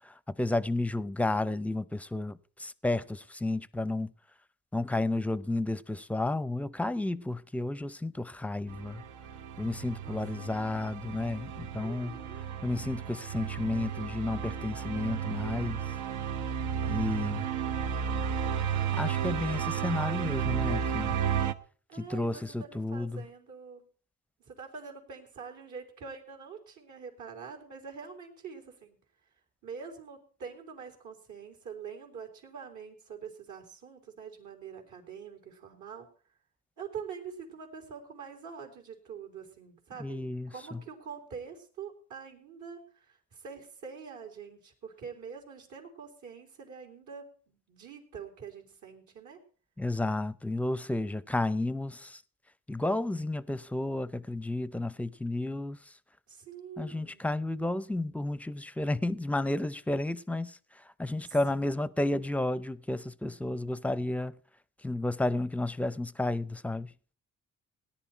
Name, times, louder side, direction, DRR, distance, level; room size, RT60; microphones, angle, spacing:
voice 1, 0.0-4.1 4.7-9.0 9.6-12.2 12.6-15.8 16.8-17.5 18.9-21.2 21.9-23.2 40.0-40.8 49.8-52.2 52.7-55.9 56.8-64.4 64.8-66.9, left 2 dB, 5° left, 0.5 m, -32 dB
sound 1, 8.7-21.5, right 8 dB, 90° right, 0.9 m, -33 dB
voice 2, 10.0-10.5 11.8-12.4 21.9-23.9 24.5-29.0 29.6-36.1 36.8-49.4 56.3-57.2 61.3-62.3, right 6 dB, 75° right, 3.8 m, -45 dB
17.5 x 10.5 x 4.4 m
cardioid pair, 90°, 30 cm